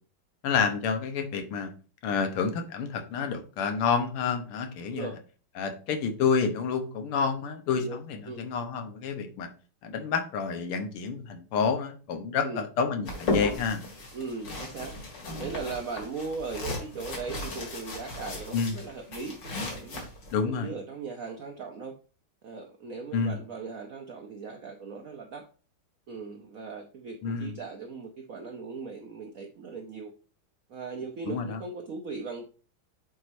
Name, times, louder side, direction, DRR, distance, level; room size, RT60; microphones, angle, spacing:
voice 1, 0.4-1.7 2.0-5.1 5.6-9.5 9.8-13.8 18.5-18.7 20.3-20.7 23.1-23.4 27.2-27.6 31.3-31.6, left 5 dB, 85° left, 6 dB, 1.9 m, -29 dB
voice 2, 4.8-5.2 7.8-8.0 8.3-8.6 12.4-12.7 14.1-15.0 15.4-20.0 20.4-21.9 22.4-25.5 26.1-30.1 30.7-32.4, right 4 dB, 70° right, 3 dB, 0.8 m, -38 dB
sound 1, 13.1-20.3, left 2 dB, 55° left, 2.5 m, -35 dB
7.7 x 4.7 x 2.6 m, 0.37 s
omnidirectional pair, 2.4 m